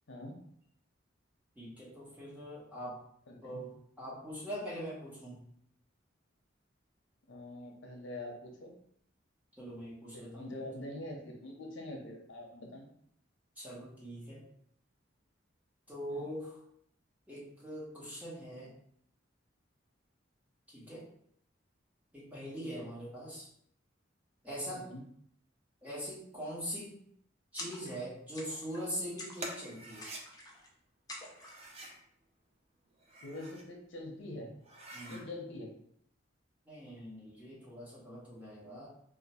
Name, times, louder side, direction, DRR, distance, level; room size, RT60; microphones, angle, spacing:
voice 1, 0.1-0.4 3.3-3.6 7.3-8.7 10.1-12.9 16.1-16.3 22.6-22.9 24.8-25.0 33.2-34.5 35.0-35.7, left 1 dB, 75° left, 0 dB, 0.7 m, -44 dB
voice 2, 1.5-3.0 3.4-5.4 9.6-10.5 13.6-14.4 15.9-16.6 17.3-18.7 20.7-21.0 22.1-23.5 24.4-24.9 25.8-26.9 27.5-30.1 34.9-35.2 36.7-38.9, equal, 10° right, -7 dB, 1.2 m, -42 dB
sound 1, 27.6-28.1 28.3-28.8 29.2-29.7 30.0-30.7 31.1-31.7, left 2 dB, 20° left, 0.6 m, -47 dB
sound 2, 29.4-30.2 31.3-32.0 32.9-33.7 34.1-34.2 34.6-35.2, right 2 dB, 35° right, 0.5 m, -47 dB
2.8 x 2.4 x 4.2 m, 0.68 s
head